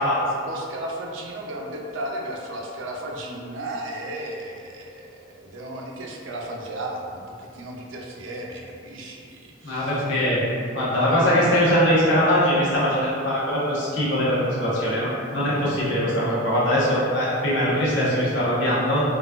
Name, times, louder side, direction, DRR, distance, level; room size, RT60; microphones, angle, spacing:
voice 1, 0.0-10.1 11.1-11.3, right 1 dB, 70° right, -1 dB, 0.4 m, -35 dB
voice 2, 9.6-10.4 10.7-19.0, equal, 65° left, -8 dB, 0.9 m, -21 dB
3.9 x 2.3 x 2.4 m, 2.4 s
head